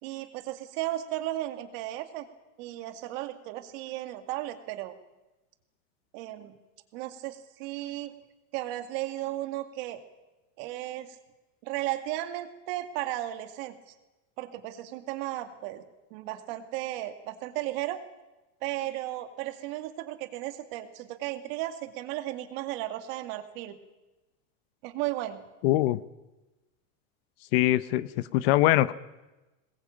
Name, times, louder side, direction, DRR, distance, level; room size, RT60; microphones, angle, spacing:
voice 1, 0.0-2.3 2.6-4.9 6.1-6.6 6.9-8.1 8.5-10.0 10.6-11.2 11.6-13.9 14.4-18.0 18.6-23.8 24.8-25.4, right 15 dB, 50° right, 8 dB, 2.2 m, -35 dB
voice 2, 25.6-26.0 27.5-28.9, left 15 dB, 50° left, 16 dB, 0.8 m, -23 dB
22.5 x 20.5 x 8.7 m, 1.1 s
supercardioid pair, 170°, 39 cm